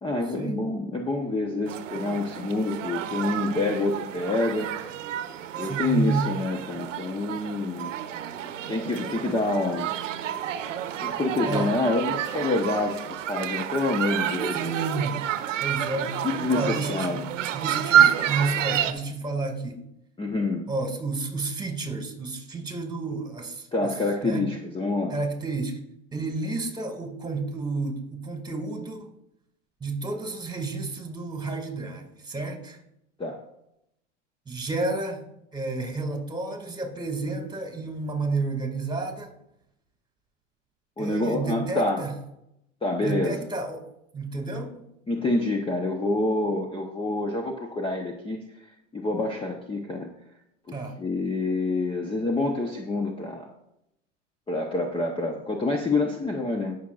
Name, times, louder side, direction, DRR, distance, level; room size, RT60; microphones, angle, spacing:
voice 1, 0.0-4.7 5.6-7.9 8.7-9.9 11.0-14.7 16.2-17.2 18.0-18.1 20.2-20.6 23.7-25.2 33.2-33.4 41.0-42.0 42.8-43.5 45.1-48.4 48.9-50.1 51.0-53.5 54.5-56.8, left 2 dB, 15° left, 2 dB, 1.0 m, -27 dB
sound 1, 1.7-18.9, right 10 dB, 85° right, 1.0 m, -29 dB
voice 2, 5.6-6.3 11.4-11.7 14.5-15.2 15.6-17.2 17.5-19.8 20.7-23.9 24.2-24.4 25.1-25.8 26.1-29.1 29.8-32.8 34.5-35.2 35.5-39.3 41.0-42.1 43.0-43.8 44.1-44.9 50.7-50.9, right 3 dB, 10° right, 4 dB, 2.1 m, -31 dB
17.5 x 6.4 x 2.5 m, 0.80 s
hypercardioid pair, 105°, 37 cm